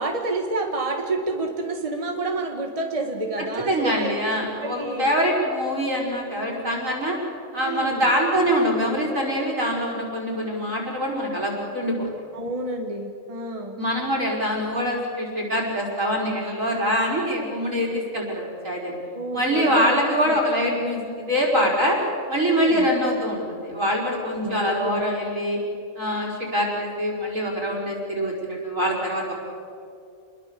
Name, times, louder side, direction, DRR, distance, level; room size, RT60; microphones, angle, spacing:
voice 1, 0.0-5.1 7.6-8.1 12.3-13.8 19.1-20.4 22.5-22.9 24.4-25.0, right 2 dB, 25° right, 3 dB, 1.8 m, -29 dB
voice 2, 3.7-7.2 7.5-12.1 13.8-18.9 19.3-22.0 22.3-25.6 26.0-29.3, equal, 70° right, 0 dB, 5.4 m, -24 dB
28.5 x 21.5 x 6.9 m, 2.5 s
omnidirectional pair, 1.4 m